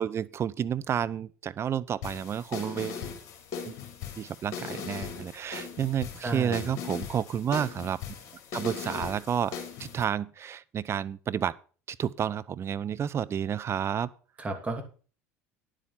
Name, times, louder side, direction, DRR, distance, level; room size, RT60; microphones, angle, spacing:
voice 1, 0.0-3.0 3.7-3.8 4.2-8.0 8.5-9.5 9.8-11.5 11.9-14.1, right 8 dB, 35° right, 0.7 m, -30 dB
sound 1, 2.0-10.0, left 7 dB, 55° left, 3.2 m, -39 dB
voice 2, 6.2-6.7 14.4-14.8, right 2 dB, 15° right, 2.9 m, -33 dB
10.0 x 7.6 x 5.9 m
hypercardioid pair, 75°, 8 cm